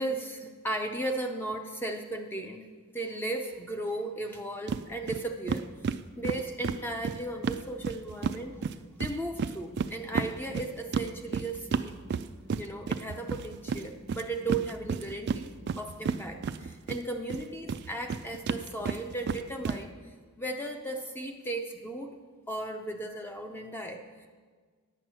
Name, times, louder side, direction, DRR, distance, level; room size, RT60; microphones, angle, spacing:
voice 1, 0.0-2.6 2.9-5.7 6.2-8.6 9.0-12.0 12.6-20.0 20.4-22.2 22.5-24.3, right 2 dB, 10° left, 3 dB, 0.5 m, -36 dB
sound 1, 4.7-4.8 5.1-5.2 5.5-8.4 8.6-17.0 17.3-19.8, right 5 dB, 50° right, 0.3 m, -32 dB
8.9 x 8.8 x 6.1 m, 1.6 s
head